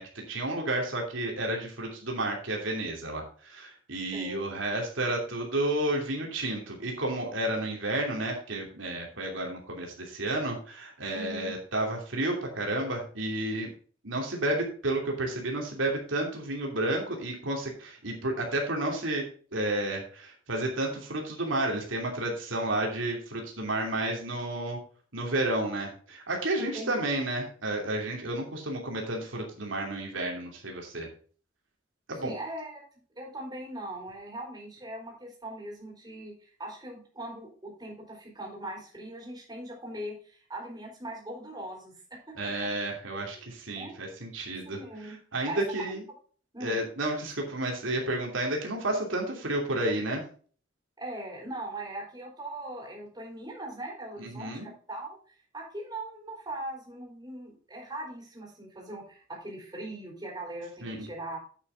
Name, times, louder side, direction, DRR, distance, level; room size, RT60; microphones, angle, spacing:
voice 1, 0.0-13.7 14.0-19.2 19.5-24.8 25.1-31.1 32.1-32.3 42.4-46.0 46.6-50.2 54.2-54.7 60.8-61.1, right 1 dB, 85° right, 0 dB, 2.8 m, -31 dB
voice 2, 11.1-11.5 26.6-26.9 32.2-32.8 33.2-42.5 43.3-43.9 44.6-45.2 45.5-46.0 46.5-46.8 51.0-55.2 55.5-61.4, right 1 dB, 20° right, -1 dB, 4.4 m, -40 dB
8.8 x 8.6 x 3.9 m, 0.42 s
head